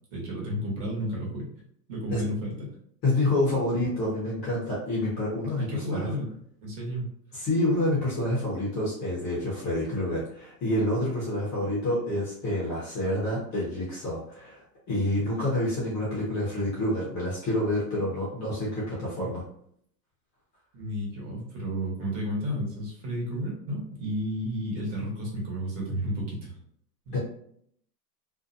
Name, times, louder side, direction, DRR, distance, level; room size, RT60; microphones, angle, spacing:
voice 1, 0.1-1.5 1.9-2.7 3.5-3.6 5.6-6.3 6.6-7.1 20.7-26.6 27.1-27.2, equal, 45° right, -3 dB, 1.1 m, -32 dB
voice 2, 3.0-6.1 7.3-19.4 27.1-27.2, left 1 dB, 20° left, -6 dB, 0.5 m, -28 dB
2.5 x 2.1 x 2.5 m, 0.66 s
supercardioid pair, 150°, 50 cm